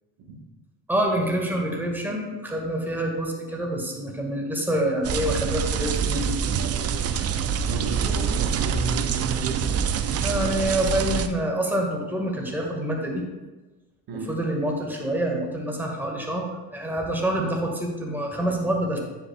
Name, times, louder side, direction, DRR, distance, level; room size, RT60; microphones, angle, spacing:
voice 1, 0.9-6.4 10.2-13.2 14.3-19.0, right 1 dB, 5° right, 0 dB, 1.6 m, -26 dB
sound 1, 5.0-11.3, right 7 dB, 35° right, 0.5 m, -25 dB
voice 2, 7.7-9.7 10.1-10.4 14.1-14.3, right 3 dB, 50° right, 0 dB, 1.3 m, -33 dB
9.2 x 5.5 x 2.3 m, 1.2 s
hypercardioid pair, 65°, 47 cm